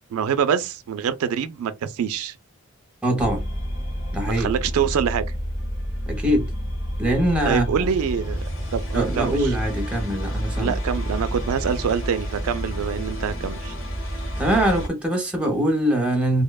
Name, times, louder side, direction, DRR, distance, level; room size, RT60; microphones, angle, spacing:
voice 1, 0.1-2.4 4.4-5.3 7.4-8.4 8.7-9.5 10.6-13.7, right 7 dB, 80° right, 0.3 m, -25 dB
voice 2, 3.0-3.5 4.1-4.5 6.1-6.5 7.0-7.9 8.9-10.8 14.1-16.4, right 1 dB, 5° right, 0.6 m, -23 dB
sound 1, 3.2-14.9, equal, 65° left, 0.7 m, -29 dB
2.6 x 2.1 x 2.2 m
head